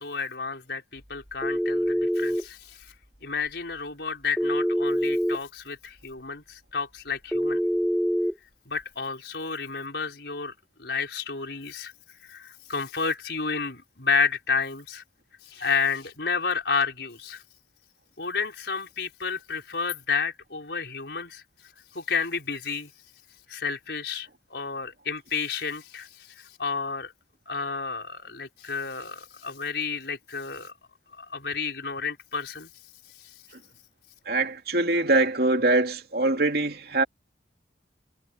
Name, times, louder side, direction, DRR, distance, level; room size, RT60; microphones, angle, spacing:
voice 1, 0.0-2.9 3.2-7.6 8.6-11.9 12.2-15.0 15.4-17.4 18.2-21.4 21.9-22.9 23.5-27.1 27.5-30.7 31.2-32.7, left 5 dB, 70° left, 5.0 m, -31 dB
Telephone, 1.4-2.4 4.4-5.4 7.3-8.3, equal, ahead, 2.7 m, -25 dB
voice 2, 34.2-37.0, right 2 dB, 60° right, 3.0 m, -23 dB
head